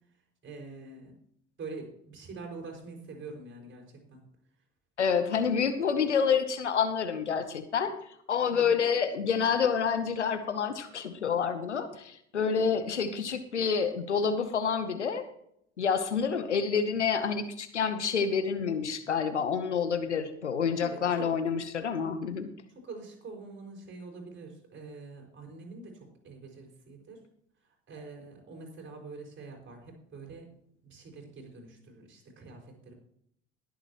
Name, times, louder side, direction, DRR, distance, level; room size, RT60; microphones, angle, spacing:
voice 1, 0.4-1.1 1.6-4.2 8.5-8.8 20.8-21.3 22.7-27.2 27.9-30.5 30.8-32.9, right 3 dB, 35° right, 1 dB, 5.3 m, -45 dB
voice 2, 5.0-7.9 8.3-15.2 15.8-22.5, left 6 dB, 85° left, 11 dB, 0.9 m, -28 dB
21.0 x 7.7 x 3.0 m, 0.71 s
figure-of-eight pair, 55°, 34 cm